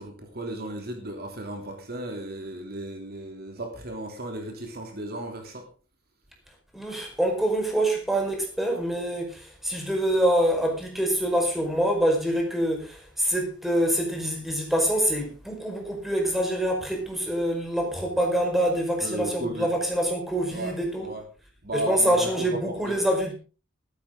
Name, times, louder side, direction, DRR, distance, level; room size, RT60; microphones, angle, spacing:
voice 1, 0.0-5.7 19.0-19.7 20.5-20.8 21.0-21.2 21.6-23.0, right 1 dB, 50° right, 3 dB, 3.1 m, -35 dB
voice 2, 6.7-21.1 21.7-23.3, right 1 dB, ahead, 1 dB, 5.0 m, -25 dB
14.5 x 14.0 x 3.8 m, 0.34 s
head